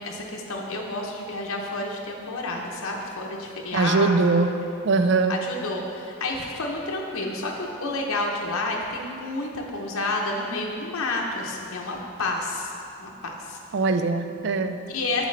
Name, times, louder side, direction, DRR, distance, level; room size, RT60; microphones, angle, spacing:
voice 1, 0.0-4.1 5.3-12.7 13.0-13.6 14.9-15.2, left 2 dB, 85° left, 0 dB, 0.7 m, -30 dB
voice 2, 3.7-4.5 4.8-5.4 13.7-14.8, right 3 dB, 55° right, 8 dB, 0.3 m, -21 dB
7.4 x 6.8 x 3.2 m, 2.5 s
head